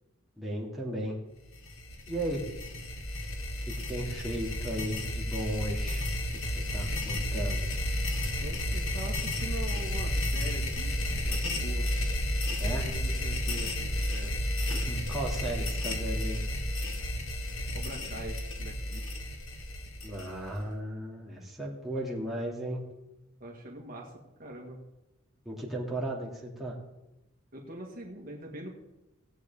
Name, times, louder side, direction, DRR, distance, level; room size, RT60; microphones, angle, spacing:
voice 1, 0.4-1.2 2.1-2.5 3.7-6.1 6.4-7.7 12.6-12.9 14.7-16.4 20.0-22.9 25.4-26.7, right 1 dB, ahead, -5 dB, 2.5 m, -35 dB
sound 1, 1.5-20.6, left 1 dB, 80° left, 1.6 m, -32 dB
voice 2, 8.4-11.0 11.3-11.9 12.5-14.3 17.7-19.2 23.4-24.8 27.5-28.8, right 1 dB, 45° right, -1 dB, 1.8 m, -43 dB
18.0 x 8.2 x 3.6 m, 0.98 s
head